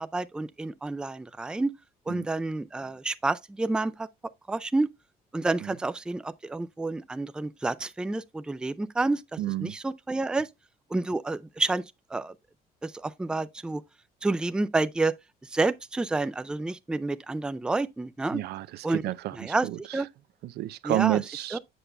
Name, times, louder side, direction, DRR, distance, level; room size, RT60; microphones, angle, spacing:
voice 1, 0.0-1.7 2.1-4.1 4.5-4.9 5.3-9.2 9.6-10.5 10.9-11.8 12.1-12.3 12.8-13.8 14.2-15.1 15.5-18.4 18.8-19.0 19.3-20.1 20.8-21.2 21.5-21.6, right 2 dB, 5° right, 0.4 m, -29 dB
voice 2, 9.4-9.8 18.3-19.8 20.4-21.6, right 15 dB, 70° right, 0.5 m, -30 dB
7.8 x 6.7 x 2.2 m
cardioid pair, 110°, 17 cm